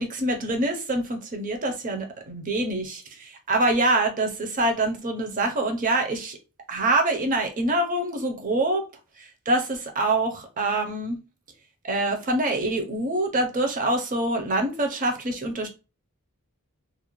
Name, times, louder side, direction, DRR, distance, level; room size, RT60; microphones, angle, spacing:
voice 1, 0.0-6.4 6.7-8.8 9.5-11.2 11.8-15.7, right 2 dB, 35° right, 0.6 m, -25 dB
2.4 x 2.1 x 3.0 m
head